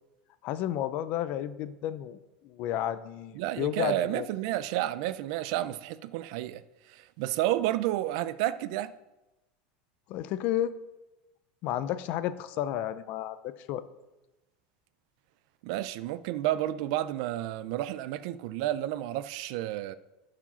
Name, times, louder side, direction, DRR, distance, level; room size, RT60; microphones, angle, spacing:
voice 1, 0.4-2.2 2.4-4.3 10.1-10.7 11.6-13.8, left 12 dB, 35° left, 0.4 m, -32 dB
voice 2, 3.3-6.6 7.2-8.9 15.6-19.9, right 14 dB, 45° right, 0.4 m, -31 dB
11.0 x 4.9 x 5.6 m
supercardioid pair, 180°, 5 cm